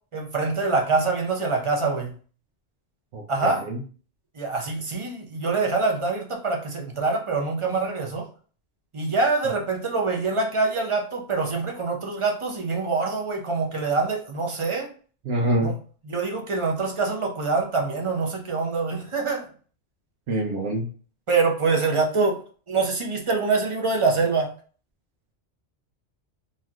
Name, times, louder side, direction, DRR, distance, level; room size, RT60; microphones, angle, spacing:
voice 1, 0.1-2.1 3.3-3.7 4.4-8.3 8.9-14.9 15.6-15.7 16.1-19.5 21.3-22.4 22.7-24.5, right 4 dB, 35° right, 1 dB, 0.6 m, -25 dB
voice 2, 3.1-3.8 15.2-15.7 20.3-20.9, right 1 dB, 85° right, -2 dB, 1.0 m, -26 dB
3.2 x 2.7 x 2.3 m, 0.41 s
omnidirectional pair, 1.2 m